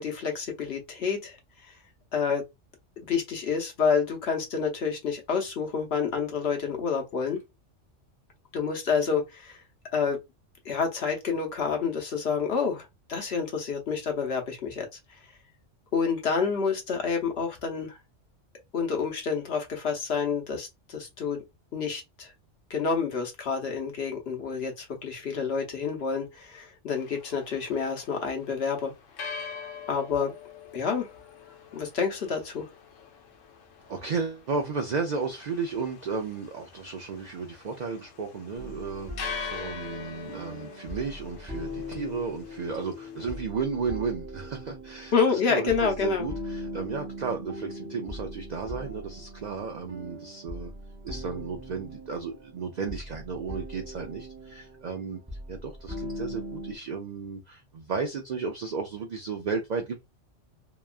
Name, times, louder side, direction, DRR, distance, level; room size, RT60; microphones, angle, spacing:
voice 1, 0.0-1.4 1.7-1.8 2.1-2.4 3.0-7.4 8.5-9.6 9.9-10.2 10.6-14.9 15.9-18.0 18.7-21.4 21.7-22.3 22.7-28.9 29.9-30.3 30.7-31.1 31.7-32.7 45.1-46.3, left 5 dB, 65° left, 0.9 m, -28 dB
sound 1, 26.9-43.4, left 6 dB, 90° left, 1.0 m, -44 dB
voice 2, 33.9-50.7 51.0-55.2 55.5-60.0, right 5 dB, 65° right, 0.4 m, -33 dB
sound 2, 38.6-56.8, left 1 dB, 15° right, 0.6 m, -40 dB
2.9 x 2.3 x 2.3 m
omnidirectional pair, 1.3 m